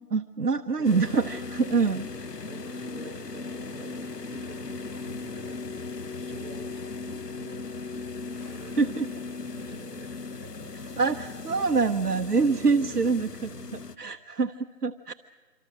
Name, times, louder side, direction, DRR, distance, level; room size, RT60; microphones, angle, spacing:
voice 1, 0.1-2.1 8.8-9.1 11.0-15.1, right 4 dB, 75° right, 6 dB, 1.0 m, -25 dB
sound 1, 0.8-14.0, left 4 dB, 85° left, 1.4 m, -38 dB
voice 2, 0.8-1.3 2.4-7.8 8.2-11.0 11.6-11.7 12.4-13.9, right 3 dB, 45° right, 4 dB, 6.5 m, -48 dB
Gunshot gunfire, 8.3-9.5, left 1 dB, 65° left, 4.9 m, -56 dB
27.0 x 25.5 x 6.4 m, 1.4 s
figure-of-eight pair, 175°, 47 cm